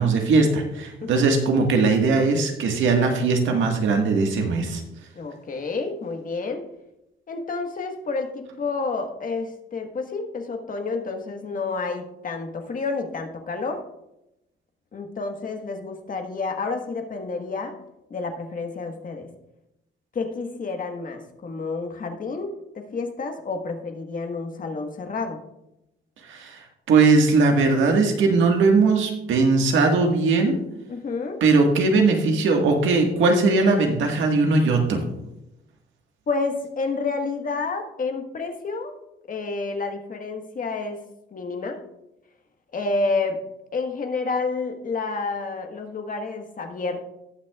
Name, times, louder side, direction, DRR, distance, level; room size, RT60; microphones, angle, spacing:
voice 1, 0.0-4.8 26.2-30.6 31.4-35.0, right 3 dB, 75° right, 3 dB, 1.6 m, -19 dB
voice 2, 5.1-6.6 7.3-13.8 14.9-17.7 18.1-19.3 20.1-25.4 30.9-31.4 36.3-39.0 39.3-41.0 41.3-41.8 42.7-43.4 43.7-47.0, left 3 dB, 45° left, 4 dB, 1.4 m, -29 dB
18.0 x 6.1 x 2.4 m, 0.88 s
cardioid pair, 90°, 20 cm